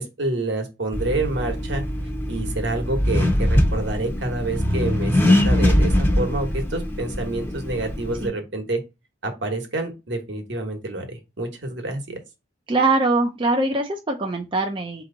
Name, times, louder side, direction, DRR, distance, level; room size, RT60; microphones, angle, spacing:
voice 1, 0.0-1.8 2.3-8.8 9.2-12.2, right 2 dB, 65° right, 5 dB, 1.2 m, -28 dB
Accelerating revving vroom, 0.9-8.3, left 1 dB, 10° left, 0.7 m, -22 dB
voice 2, 12.7-15.0, right 2 dB, 25° right, 3 dB, 0.4 m, -22 dB
4.4 x 2.9 x 3.8 m, 0.25 s
head